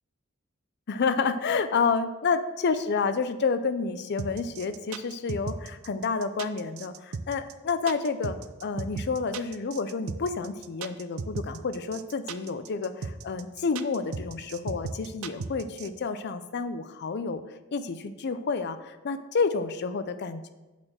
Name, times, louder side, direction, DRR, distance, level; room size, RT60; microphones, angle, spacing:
voice 1, 0.9-17.4 17.7-20.5, left 4 dB, 55° left, 10 dB, 0.5 m, -29 dB
sound 1, 4.2-15.9, right 4 dB, 90° right, 0.5 m, -35 dB
8.7 x 4.3 x 6.2 m, 1.1 s
head